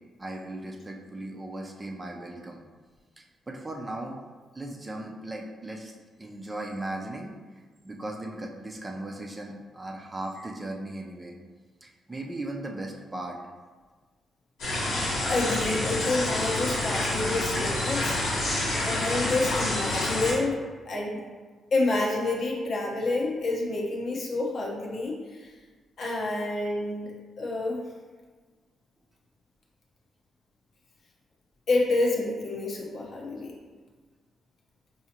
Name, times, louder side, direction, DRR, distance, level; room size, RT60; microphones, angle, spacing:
voice 1, 0.2-2.6 3.5-4.2 4.5-11.3 11.8-13.4, right 1 dB, 25° right, 0 dB, 0.6 m, -37 dB
sound 1, 14.6-20.3, left 1 dB, 85° left, 1.4 m, -28 dB
voice 2, 15.3-18.2 18.8-20.6 20.9-21.2 21.7-25.5 26.0-27.8 31.7-33.5, left 2 dB, 60° left, -2 dB, 0.9 m, -28 dB
4.7 x 2.8 x 2.8 m, 1.4 s
cardioid pair, 75°, 0 cm